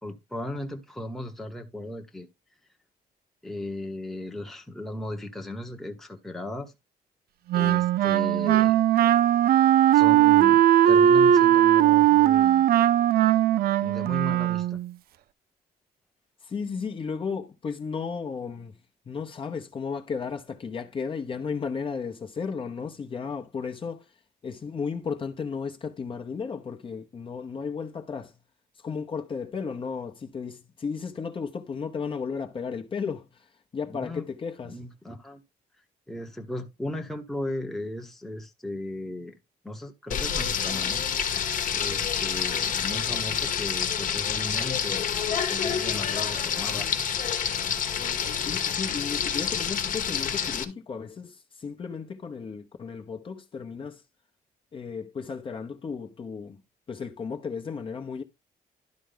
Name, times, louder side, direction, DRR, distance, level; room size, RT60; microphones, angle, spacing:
voice 1, 0.0-2.3 3.4-6.7 7.5-8.8 9.9-12.7 13.8-14.8 33.9-34.2 34.6-35.4 36.1-39.4 39.6-41.0 41.7-45.2 45.5-46.9, left 1 dB, ahead, 1.0 m, -36 dB
Wind instrument woodwind instrument, 7.5-14.9, right 12 dB, 70° right, 0.4 m, -19 dB
voice 2, 16.4-18.8 19.1-24.1 24.4-28.4 28.7-34.8 48.4-54.0 54.7-56.6 56.9-58.2, left 5 dB, 30° left, 0.9 m, -34 dB
Frying (food), 40.1-50.6, left 8 dB, 55° left, 1.3 m, -28 dB
11.5 x 4.6 x 3.8 m
cardioid pair, 150°, 16 cm